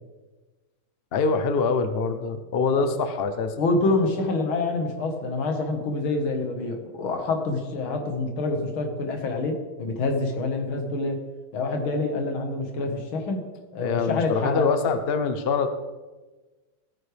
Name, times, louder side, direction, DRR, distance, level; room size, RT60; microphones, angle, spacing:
voice 1, 1.1-3.5 13.8-15.7, left 4 dB, 60° left, 8 dB, 0.6 m, -24 dB
voice 2, 3.6-11.2 11.5-13.4 13.7-14.7, left 3 dB, 75° left, 4 dB, 2.3 m, -26 dB
16.5 x 9.4 x 3.4 m, 1.2 s
omnidirectional pair, 2.3 m